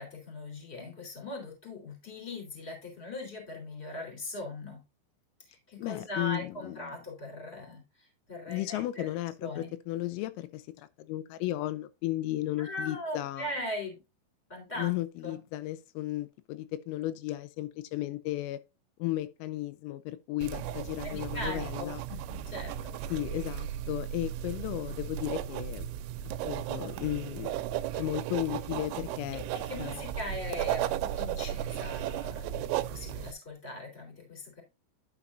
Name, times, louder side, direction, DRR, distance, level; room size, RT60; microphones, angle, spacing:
voice 1, 0.0-4.8 5.5-7.8 8.3-9.1 9.4-9.7 12.6-14.0 14.5-14.9 15.2-15.4 21.0-22.9 29.3-34.6, left 1 dB, 15° left, 3.4 m, -40 dB
voice 2, 5.8-7.0 8.5-13.5 14.8-18.6 19.0-22.0 23.1-25.9 26.4-27.6 27.9-29.4 29.8-30.0, left 16 dB, 85° left, 3.3 m, -34 dB
sound 1, 20.4-33.3, right 11 dB, 90° right, 3.3 m, -35 dB
11.0 x 5.9 x 2.7 m
omnidirectional pair, 5.9 m